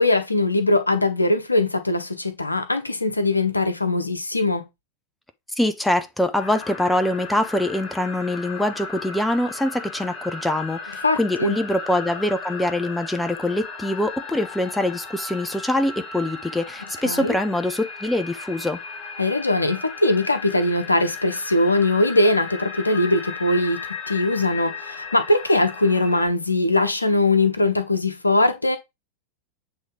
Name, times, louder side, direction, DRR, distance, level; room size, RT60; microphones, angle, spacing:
voice 1, 0.0-4.6 11.0-11.6 17.0-17.3 19.2-28.8, left 2 dB, 80° left, 1.0 m, -21 dB
voice 2, 5.6-18.8, left 1 dB, 5° left, 0.7 m, -24 dB
sound 1, 6.4-26.3, left 4 dB, 35° left, 1.7 m, -36 dB
8.0 x 3.1 x 3.7 m
figure-of-eight pair, 90°, 0 cm